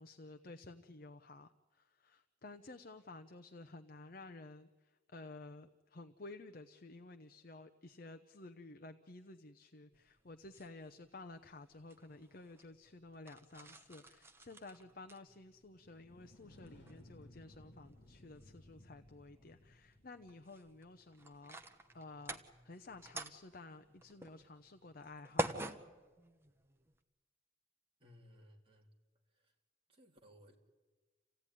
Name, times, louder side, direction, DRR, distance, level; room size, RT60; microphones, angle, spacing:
voice 1, 0.0-21.6 21.9-25.8, left 2 dB, 50° left, 7 dB, 0.8 m, -53 dB
sound 1, 9.9-27.0, right 1 dB, 15° right, 1.1 m, -48 dB
sound 2, 15.7-20.6, left 1 dB, 65° left, 2.3 m, -60 dB
voice 2, 28.0-28.9 29.4-29.5 29.9-30.6, equal, 30° right, -1 dB, 3.2 m, -61 dB
28.0 x 16.0 x 10.0 m, 1.3 s
head